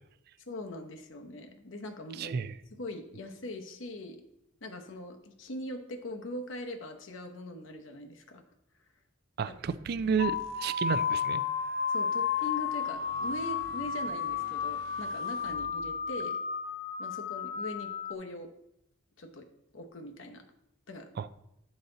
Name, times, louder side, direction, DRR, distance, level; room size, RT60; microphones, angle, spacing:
voice 1, 0.5-2.4 2.7-4.2 4.6-8.4 9.5-9.6 11.9-16.4 17.0-18.5 19.2-19.4 19.7-20.4 20.9-21.1, left 1 dB, 75° left, 5 dB, 0.9 m, -41 dB
voice 2, 2.2-2.5 9.4-11.4 21.2-21.3, right 6 dB, 55° right, 13 dB, 0.3 m, -31 dB
sound 1, 9.7-16.2, right 3 dB, 80° right, 0.8 m, -52 dB
sound 2, 10.2-18.1, left 6 dB, 35° left, 0.4 m, -32 dB
9.7 x 4.1 x 3.9 m, 0.80 s
head